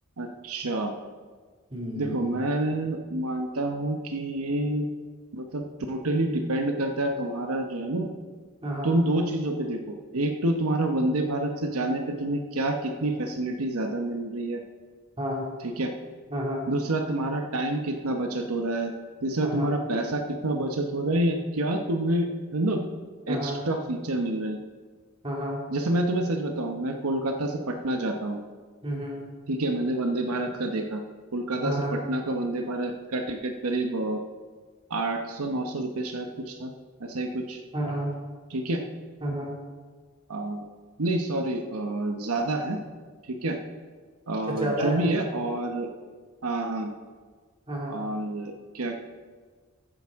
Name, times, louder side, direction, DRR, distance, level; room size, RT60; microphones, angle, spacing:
voice 1, 0.2-0.9 2.0-4.9 5.3-5.6 5.9-8.1 8.8-14.6 15.6-15.9 16.7-18.9 19.2-22.8 23.3-24.6 25.7-28.4 29.5-31.0 31.3-34.2 34.9-36.7 37.0-37.6 38.5-38.8 40.3-40.7 41.0-42.8 43.2-43.6 44.3-45.9 46.4-46.9 47.9-49.0, right 1 dB, 85° right, 4 dB, 0.9 m, -28 dB
voice 2, 1.7-2.3 8.6-8.9 15.2-15.5 16.3-16.7 19.4-19.7 23.3-23.6 25.2-25.6 28.8-29.2 31.6-32.0 37.7-38.1 39.2-39.6 44.5-45.0 47.7-48.0, equal, 25° right, -3 dB, 2.5 m, -30 dB
14.5 x 9.0 x 3.6 m, 1.5 s
head